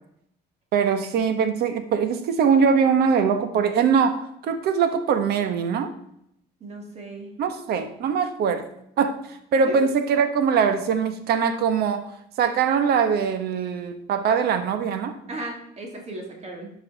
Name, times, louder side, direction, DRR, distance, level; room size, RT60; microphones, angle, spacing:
voice 1, 0.7-5.9 7.4-8.7 9.0-12.1 12.4-15.1, right 6 dB, 70° right, 9 dB, 1.2 m, -22 dB
voice 2, 6.6-7.3 9.6-9.8 15.3-16.7, right 2 dB, 40° right, 1 dB, 2.3 m, -36 dB
11.5 x 5.6 x 4.0 m, 0.74 s
cardioid pair, 110°, 17 cm